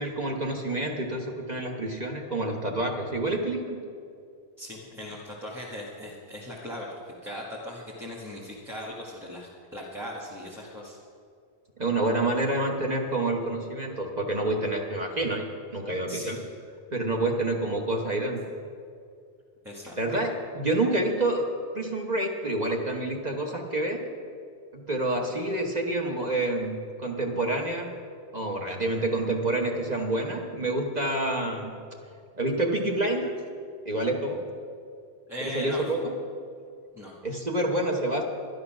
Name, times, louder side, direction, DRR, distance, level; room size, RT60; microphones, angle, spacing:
voice 1, 0.0-3.8 11.8-16.4 16.9-18.4 20.0-21.5 21.7-24.0 24.7-28.0 28.3-31.7 32.4-33.3 33.8-34.4 35.4-36.1 37.2-38.2, right 2 dB, 40° right, 0 dB, 1.2 m, -28 dB
voice 2, 4.6-11.0 16.1-16.3 19.6-19.9 35.3-35.8 36.9-37.1, left 1 dB, ahead, -6 dB, 1.7 m, -39 dB
12.0 x 11.0 x 6.0 m, 2.3 s
omnidirectional pair, 1.1 m